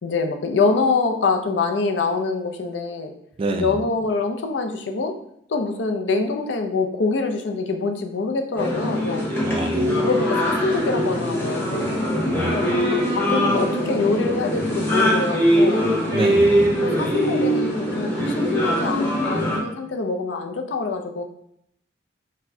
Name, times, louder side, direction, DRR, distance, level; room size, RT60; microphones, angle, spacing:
voice 1, 0.0-3.1 3.6-5.1 5.5-9.2 9.9-11.9 12.5-15.9 16.8-21.2, left 4 dB, 80° left, 4 dB, 0.4 m, -25 dB
voice 2, 3.4-3.8 9.4-9.9 12.3-12.8 16.1-16.6, right 2 dB, 30° right, 6 dB, 0.3 m, -27 dB
sound 1, 8.6-19.6, equal, 10° left, 0.7 m, -22 dB
4.2 x 2.1 x 2.6 m, 0.73 s
head